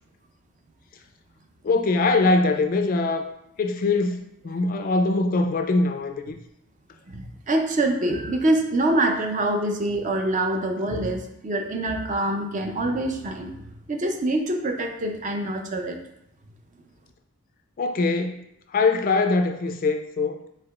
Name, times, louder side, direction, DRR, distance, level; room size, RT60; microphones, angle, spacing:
voice 1, 1.6-3.3 3.6-6.4 17.8-18.4 18.7-20.4, left 3 dB, 40° left, 5 dB, 0.3 m, -22 dB
voice 2, 7.1-13.6 13.9-16.0, right 1 dB, 35° right, 4 dB, 0.5 m, -25 dB
4.7 x 4.2 x 2.4 m, 0.78 s
head